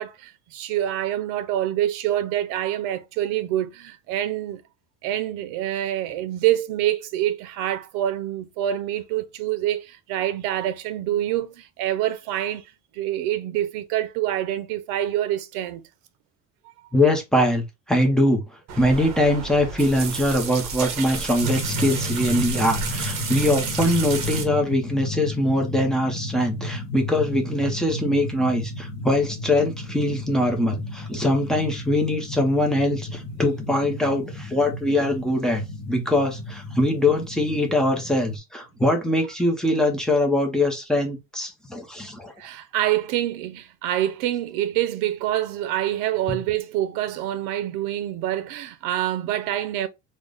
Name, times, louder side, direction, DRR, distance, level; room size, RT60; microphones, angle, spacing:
voice 1, 0.0-4.6 5.0-12.7 12.9-15.8 16.6-16.7 42.4-49.9, right 12 dB, 80° right, 0.6 m, -26 dB
voice 2, 16.9-18.4 18.8-42.3 46.3-46.4, left 1 dB, ahead, 0.5 m, -22 dB
sound 1, 18.7-24.4, right 5 dB, 55° right, 1.1 m, -31 dB
sound 2, 21.4-38.4, left 1 dB, 20° left, 1.0 m, -33 dB
3.7 x 2.0 x 3.2 m
cardioid pair, 170°, 32 cm